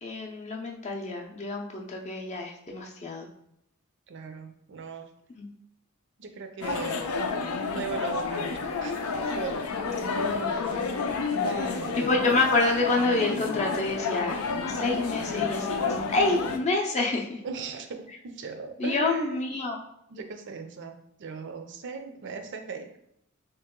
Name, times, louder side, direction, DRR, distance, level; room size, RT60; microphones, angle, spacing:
voice 1, 0.0-3.3 5.4-5.5 10.1-10.5 12.0-14.4 14.7-15.8 16.1-17.4 18.8-19.8, left 3 dB, 30° left, 0 dB, 0.5 m, -27 dB
voice 2, 4.1-5.1 6.2-7.0 7.7-9.6 10.0-10.1 11.4-12.1 17.4-19.4 20.1-22.9, right 5 dB, 55° right, 6 dB, 0.5 m, -38 dB
sound 1, 6.6-16.6, left 4 dB, 85° left, 0.5 m, -30 dB
3.0 x 2.9 x 3.6 m, 0.77 s
head